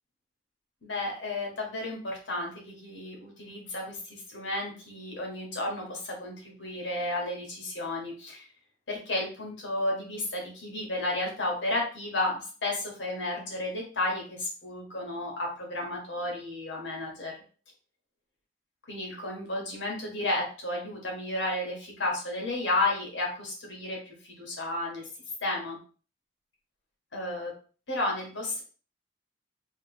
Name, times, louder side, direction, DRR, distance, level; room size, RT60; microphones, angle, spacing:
voice 1, 0.8-8.4 8.9-17.3 18.9-25.0 25.4-25.8 27.1-27.5 27.9-28.6, left 2 dB, 80° left, -1 dB, 1.3 m, -32 dB
3.3 x 2.6 x 3.3 m, 0.38 s
head